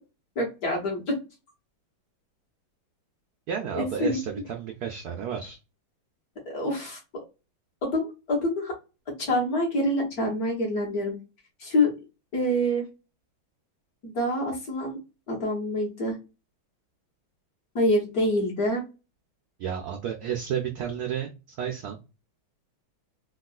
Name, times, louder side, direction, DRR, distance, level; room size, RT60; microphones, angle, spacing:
voice 1, 0.3-1.1 3.8-4.2 6.4-7.0 7.8-8.7 9.2-11.1 11.6-11.9 12.3-12.8 14.0-15.0 15.3-16.2 17.7-18.8, left 1 dB, 50° left, -1 dB, 1.4 m, -26 dB
voice 2, 3.5-5.6 19.6-22.0, right 8 dB, 80° right, 3 dB, 0.8 m, -32 dB
3.6 x 2.3 x 2.3 m, 0.29 s
omnidirectional pair, 2.2 m